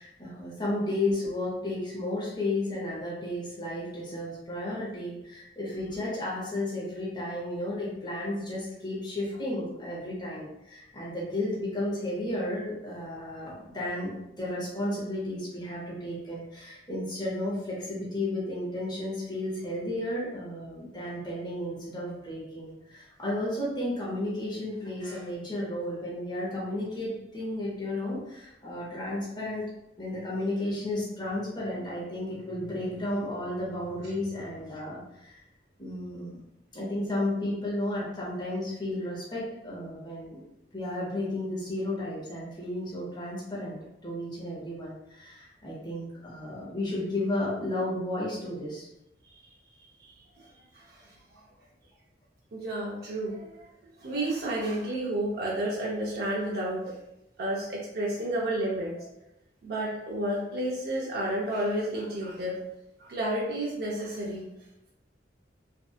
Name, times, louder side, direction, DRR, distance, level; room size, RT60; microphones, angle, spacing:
voice 1, 0.0-29.7 30.0-35.4 35.8-36.4 36.7-40.4 40.7-43.8 44.0-48.9, left 1 dB, 25° left, -6 dB, 0.8 m, -33 dB
voice 2, 52.5-53.6 54.0-56.8 57.4-58.9 59.6-62.6 63.0-64.4, right 1 dB, 60° right, -4 dB, 0.5 m, -31 dB
2.6 x 2.4 x 2.3 m, 0.87 s
head